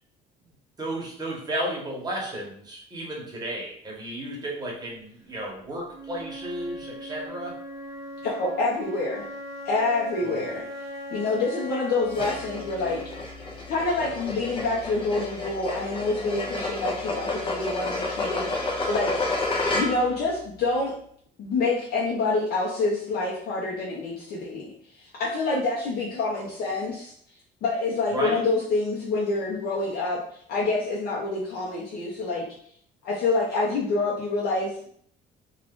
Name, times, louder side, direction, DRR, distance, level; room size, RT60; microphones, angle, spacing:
voice 1, 0.8-7.5 10.2-10.6 26.3-26.5 28.1-28.4, right 1 dB, 25° right, -3 dB, 1.1 m, -33 dB
Wind instrument woodwind instrument, 5.9-13.9, equal, ahead, 1.1 m, -39 dB
voice 2, 8.2-9.3 9.6-10.6 11.1-13.0 13.7-19.1 19.7-20.9 21.4-24.7 25.0-27.1 27.6-30.2 30.5-32.4 33.0-34.9, left 3 dB, 65° left, -5 dB, 0.7 m, -27 dB
sound 1, 12.1-20.2, left 2 dB, 30° left, 0.6 m, -30 dB
2.5 x 2.4 x 3.6 m, 0.63 s
cardioid pair, 110°, 17 cm